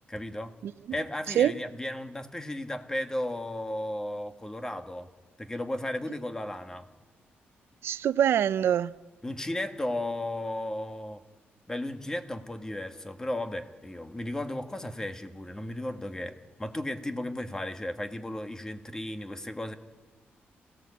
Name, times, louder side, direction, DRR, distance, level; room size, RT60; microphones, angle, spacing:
voice 1, 0.1-0.5 0.9-5.1 5.4-6.9 9.2-11.2 11.7-19.7, left 1 dB, 15° left, 1.9 m, -35 dB
voice 2, 7.8-8.9, right 10 dB, 75° right, 0.6 m, -24 dB
27.5 x 17.0 x 8.5 m
cardioid pair, 95°, 4 cm